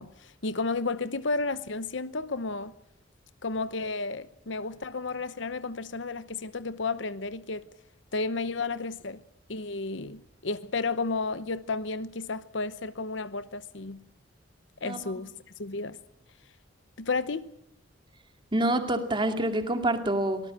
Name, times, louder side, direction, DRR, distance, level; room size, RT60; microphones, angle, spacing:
voice 1, 0.0-2.7 3.4-7.7 8.1-9.2 9.5-14.1 14.8-15.3 15.6-16.0 17.0-17.5, left 3 dB, 70° left, 0.9 m, -32 dB
voice 2, 18.5-20.4, right 1 dB, 25° right, 2.3 m, -26 dB
24.0 x 18.5 x 7.7 m
head